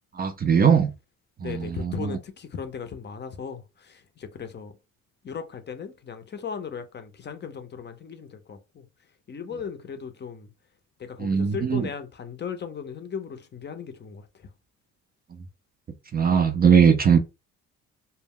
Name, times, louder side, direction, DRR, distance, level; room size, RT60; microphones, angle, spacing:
voice 1, 0.2-0.9 1.4-2.1 11.2-11.9 16.1-17.2, right 7 dB, 30° right, 0.4 m, -20 dB
voice 2, 1.4-4.7 5.2-8.9 9.3-10.5 11.0-14.5, left 6 dB, 35° left, 0.5 m, -37 dB
2.1 x 2.0 x 3.5 m
cardioid pair, 90°, 30 cm